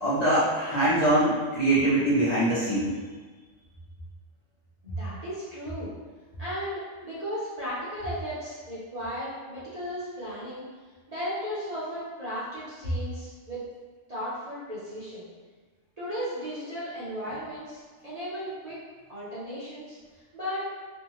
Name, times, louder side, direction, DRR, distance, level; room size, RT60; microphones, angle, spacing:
voice 1, 0.0-2.9, right 1 dB, 45° left, -12 dB, 0.6 m, -23 dB
voice 2, 4.8-5.9 6.4-10.6 11.1-13.6 14.1-15.3 16.0-18.8 19.1-20.0 20.3-20.7, equal, 40° right, -10 dB, 0.7 m, -35 dB
2.6 x 2.2 x 2.9 m, 1.4 s
omnidirectional pair, 1.3 m